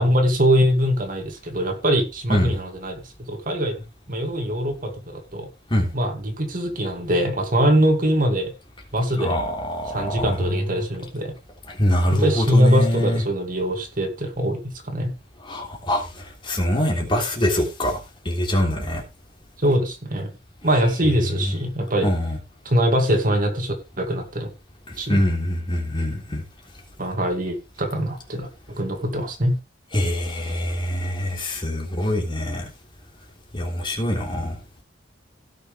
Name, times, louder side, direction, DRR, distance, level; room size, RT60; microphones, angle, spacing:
voice 1, 0.0-3.0 3.3-3.8 4.1-5.5 5.9-8.5 8.9-9.3 9.9-11.3 12.1-15.1 19.6-20.3 20.6-22.1 22.7-24.5 25.0-25.2 27.0-29.6, equal, 45° right, 2.4 m, -22 dB
voice 2, 9.2-10.6 11.7-13.2 15.4-19.0 21.4-21.5 22.0-22.4 25.1-26.4 29.9-32.6 33.5-34.6, left 1 dB, 25° left, 3.4 m, -24 dB
17.0 x 6.5 x 3.4 m
head